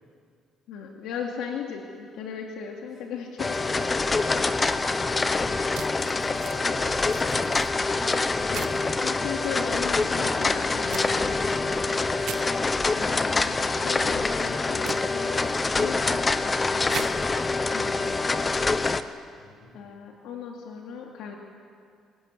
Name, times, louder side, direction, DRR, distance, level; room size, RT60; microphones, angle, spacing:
voice 1, 0.7-3.6 8.5-12.1 12.9-15.4 15.7-17.0 17.7-18.5 19.7-21.4, left 6 dB, 80° left, 1 dB, 2.6 m, -37 dB
sound 1, 3.4-19.0, left 3 dB, 15° left, 0.8 m, -25 dB
voice 2, 3.6-4.6 5.8-7.7 19.4-19.7, left 1 dB, 40° left, 1 dB, 6.5 m, -46 dB
sound 2, 5.7-6.6 7.0-7.7 8.5-8.8 10.9-11.1 12.2-12.4 14.8-15.0 16.9-17.1, right 11 dB, 60° right, 1.1 m, -37 dB
24.0 x 20.0 x 9.7 m, 2.2 s
cardioid pair, 170°, 0 cm